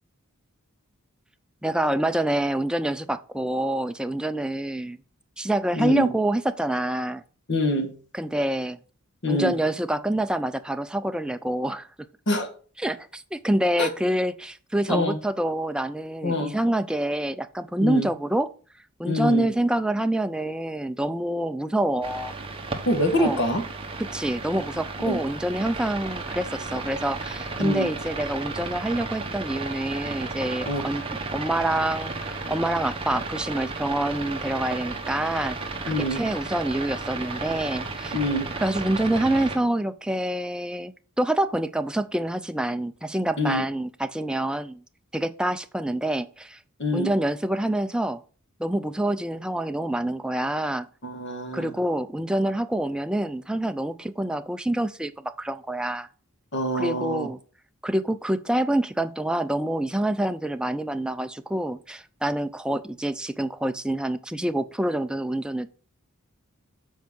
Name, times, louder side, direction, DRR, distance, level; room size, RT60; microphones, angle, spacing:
voice 1, 1.6-5.0 5.4-7.2 8.1-8.8 9.3-11.9 12.8-18.5 19.0-22.3 23.2-23.4 24.0-35.6 35.9-38.1 38.6-44.8 45.1-46.6 46.9-48.2 48.6-50.9 51.5-56.1 56.7-57.4 57.8-65.7, right 1 dB, 5° right, 0.3 m, -26 dB
voice 2, 5.7-6.1 7.5-7.9 9.2-9.5 12.3-12.5 13.8-13.9 14.9-15.2 16.2-16.5 17.8-18.1 19.1-19.5 22.9-23.6 25.0-25.2 27.6-27.9 30.7-30.8 35.9-36.2 38.1-38.5 43.4-43.6 46.8-47.1 51.0-51.7 56.5-57.3, left 1 dB, 55° left, 1.5 m, -25 dB
sound 1, 22.0-39.6, right 3 dB, 25° right, 1.1 m, -34 dB
7.3 x 4.5 x 6.0 m
head